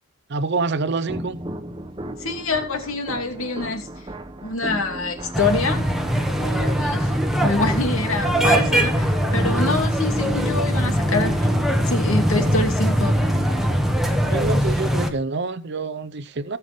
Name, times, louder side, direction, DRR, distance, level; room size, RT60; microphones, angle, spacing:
voice 1, 0.3-1.4 14.3-16.6, right 3 dB, 50° right, 0.6 m, -26 dB
sound 1, 1.1-14.7, right 1 dB, 20° right, 0.9 m, -33 dB
voice 2, 2.2-3.9 4.4-5.9 6.4-7.1 7.4-11.5 11.8-13.2, left 3 dB, 70° left, 2.6 m, -25 dB
sound 2, 5.3-15.1, equal, ahead, 1.3 m, -21 dB
18.0 x 7.0 x 3.5 m
head